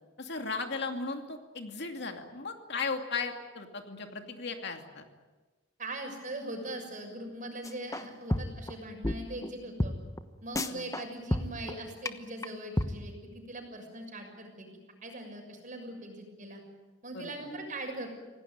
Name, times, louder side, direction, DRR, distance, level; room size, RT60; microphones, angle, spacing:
voice 1, 0.2-5.0 10.6-10.8 17.1-17.3, left 4 dB, 60° left, 5 dB, 2.5 m, -36 dB
voice 2, 5.8-9.9 10.4-14.7 15.0-16.6 17.0-18.1, right 1 dB, 45° right, 4 dB, 6.6 m, -41 dB
sound 1, 7.6-8.0 8.3-8.7 9.0-9.1 9.4-9.5 9.8-9.9 10.2-10.3 10.5-11.0 11.3-11.7 12.0-12.1 12.4-12.5 12.8-12.9, left 1 dB, 15° left, 1.1 m, -29 dB
27.0 x 18.0 x 9.4 m, 1.3 s
head